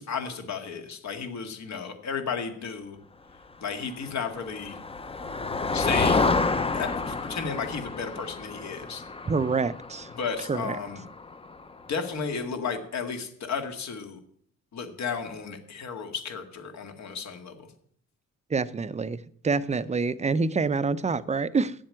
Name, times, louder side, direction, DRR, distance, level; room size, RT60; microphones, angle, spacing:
voice 1, 0.0-3.0 3.6-4.8 5.7-6.3 6.7-9.0 10.2-11.0 11.9-14.2 14.7-17.7, left 6 dB, 65° left, 2.0 m, -33 dB
Motor vehicle (road), 4.0-11.8, left 3 dB, 20° left, 0.8 m, -29 dB
voice 2, 9.3-10.1 10.5-10.8 18.5-19.2 19.4-21.7, right 4 dB, 25° right, 0.6 m, -26 dB
8.7 x 7.5 x 8.8 m
cardioid pair, 90°, 30 cm